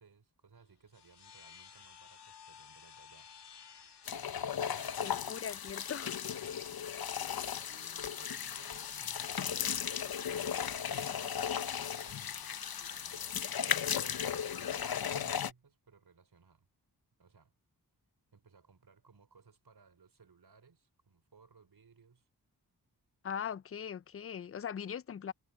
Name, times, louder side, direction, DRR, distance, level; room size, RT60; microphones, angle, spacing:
voice 1, 0.0-3.3 4.6-5.1 6.4-6.9 7.7-13.9 14.3-16.7 17.2-17.5 18.3-22.3, right 5 dB, 70° right, 4.0 m, -62 dB
sound 1, 0.6-15.1, left 7 dB, 80° left, 2.2 m, -57 dB
sound 2, 4.1-15.5, left 8 dB, 60° left, 0.8 m, -36 dB
voice 2, 5.0-6.2 23.2-25.3, left 8 dB, 35° left, 0.4 m, -40 dB
cardioid pair, 45°, 40 cm